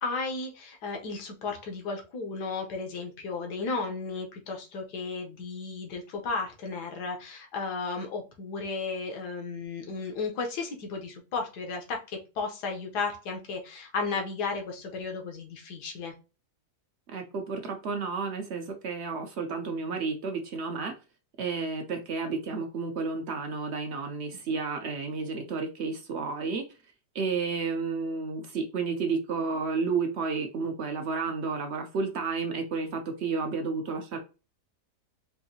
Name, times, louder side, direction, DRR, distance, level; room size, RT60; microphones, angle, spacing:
voice 1, 0.0-16.1, left 4 dB, 80° left, 1.5 m, -34 dB
voice 2, 17.1-20.9 21.4-26.6 27.1-34.2, right 4 dB, 65° right, 0.7 m, -31 dB
4.6 x 2.6 x 2.7 m
omnidirectional pair, 1.7 m